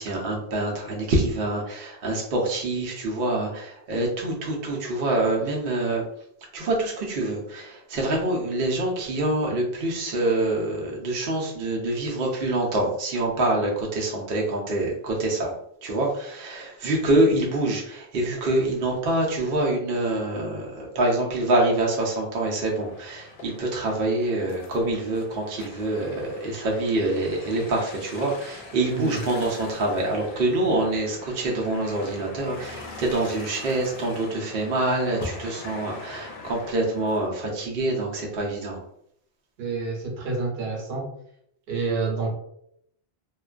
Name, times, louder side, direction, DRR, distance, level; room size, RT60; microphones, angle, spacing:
voice 1, 0.0-6.0 6.5-15.5 15.8-38.8, right 2 dB, 65° right, -2 dB, 0.8 m, -26 dB
sound 1, 22.4-37.3, left 3 dB, 90° left, 0.8 m, -42 dB
voice 2, 39.6-41.1 41.7-42.3, right 4 dB, 85° right, -1 dB, 0.9 m, -28 dB
2.4 x 2.2 x 2.3 m, 0.72 s
omnidirectional pair, 1.0 m